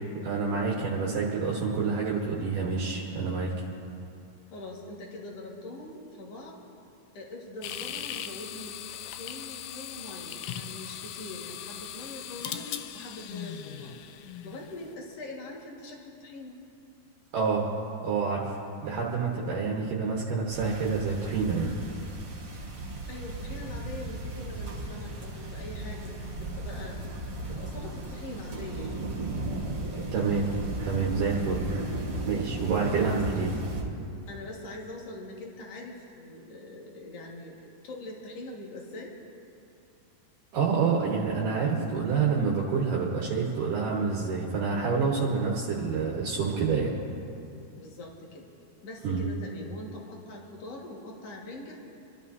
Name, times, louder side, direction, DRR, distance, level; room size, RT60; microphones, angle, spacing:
voice 1, 0.1-3.5 17.3-17.7 18.0-21.7 30.1-30.5 30.8-31.6 32.2-33.5 40.5-46.9 49.0-49.3, right 5 dB, 65° right, -4 dB, 2.7 m, -28 dB
voice 2, 4.5-6.6 7.1-8.8 9.1-12.7 12.9-14.0 14.4-16.6 23.1-27.0 27.5-29.1 32.9-33.2 34.3-39.1 47.8-48.5 48.8-51.8, left 2 dB, 50° left, -2 dB, 2.4 m, -43 dB
sound 1, 7.6-14.9, left 10 dB, 85° left, 2.0 m, -39 dB
sound 2, 20.5-33.8, right 2 dB, 40° right, 3.3 m, -36 dB
28.0 x 12.5 x 2.7 m, 2.6 s
omnidirectional pair, 4.4 m